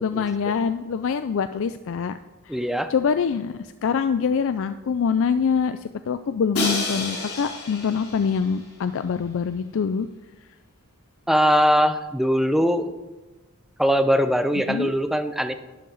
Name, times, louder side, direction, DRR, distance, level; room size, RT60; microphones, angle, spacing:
voice 1, 0.0-2.1 2.5-2.6 2.9-5.8 6.1-10.1 14.7-14.9, left 6 dB, 60° left, 11 dB, 0.4 m, -24 dB
voice 2, 2.5-2.9 11.3-12.9 13.8-15.5, equal, ahead, 9 dB, 0.5 m, -21 dB
Crash cymbal, 6.5-8.6, left 2 dB, 80° left, 3.3 m, -29 dB
11.5 x 9.3 x 4.0 m, 1.2 s
head